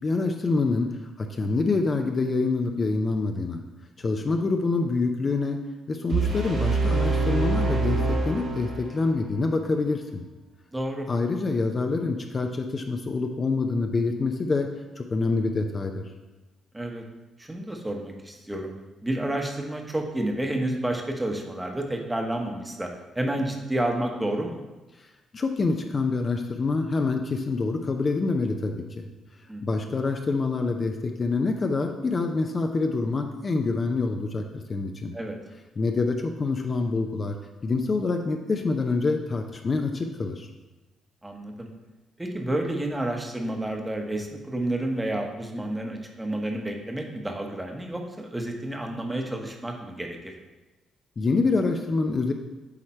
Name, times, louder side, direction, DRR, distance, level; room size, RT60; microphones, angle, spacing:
voice 1, 0.0-0.9 1.2-3.6 4.0-5.6 5.9-10.2 11.1-14.7 15.0-16.0 25.3-29.1 29.6-34.4 34.7-35.1 35.8-37.4 37.6-40.5 51.2-52.3, left 3 dB, 35° left, 4 dB, 0.5 m, -26 dB
sound 1, 6.1-9.2, right 3 dB, 70° right, 1.7 m, -25 dB
voice 2, 10.7-11.1 16.7-17.0 17.4-18.7 19.0-22.9 23.1-24.6 29.5-29.6 35.1-35.4 41.2-41.7 42.2-50.3, right 1 dB, 10° right, 3 dB, 1.0 m, -30 dB
8.5 x 3.2 x 4.3 m, 1.1 s
cardioid pair, 90°, 0 cm